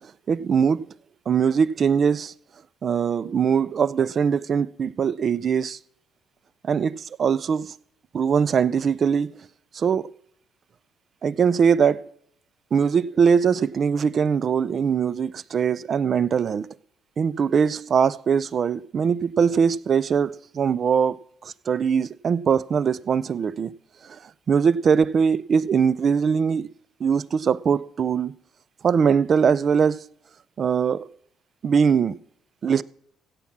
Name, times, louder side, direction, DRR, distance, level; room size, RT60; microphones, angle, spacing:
voice 1, 0.3-0.8 1.3-2.3 2.8-5.8 6.6-6.9 7.2-7.7 8.1-9.3 9.7-10.1 11.2-12.0 12.7-16.7 17.2-21.2 21.7-23.7 24.5-26.7 27.0-28.3 28.8-30.0 30.6-31.1 31.6-32.1 32.6-32.8, right 6 dB, 40° right, 0.4 m, -21 dB
16.0 x 7.2 x 5.9 m
cardioid pair, 120°, 0 cm